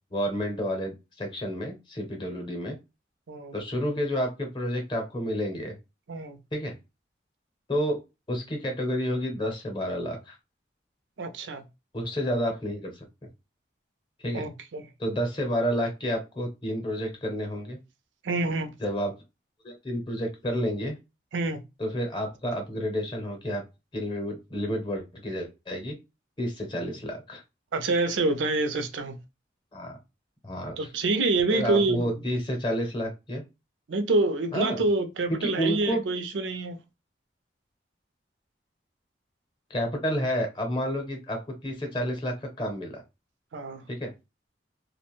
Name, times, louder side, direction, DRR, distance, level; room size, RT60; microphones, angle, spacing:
voice 1, 0.1-2.8 3.5-5.8 6.5-6.7 7.7-8.0 8.3-10.4 11.9-13.0 14.2-14.5 15.0-17.8 18.8-19.1 19.6-20.9 21.8-23.6 23.9-25.9 26.4-27.4 29.7-29.9 30.4-30.8 31.5-33.4 34.5-34.8 35.4-36.0 39.7-43.0 43.9-44.1, equal, 25° left, 0.7 m, -30 dB
voice 2, 11.2-11.6 14.3-14.9 18.2-18.7 21.3-21.6 27.7-29.2 30.8-32.2 33.9-36.8 43.5-43.8, right 2 dB, 90° right, 0.5 m, -27 dB
2.4 x 2.1 x 2.9 m
head